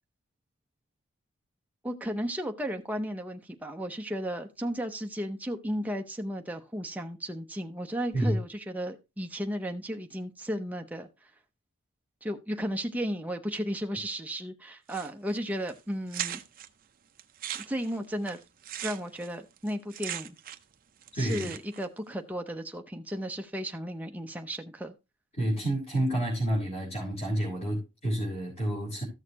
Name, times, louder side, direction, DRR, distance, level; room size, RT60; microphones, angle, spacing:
voice 1, 1.8-11.1 12.2-16.4 17.5-18.4 18.8-20.4 21.1-24.9, equal, 10° right, 0.7 m, -34 dB
sound 1, 14.9-15.4 15.7-15.8 16.1-16.7 17.2-20.7 21.0-21.8, right 11 dB, 45° right, 0.6 m, -38 dB
voice 2, 25.4-29.0, right 1 dB, 30° left, 3.6 m, -29 dB
14.0 x 6.4 x 2.8 m
head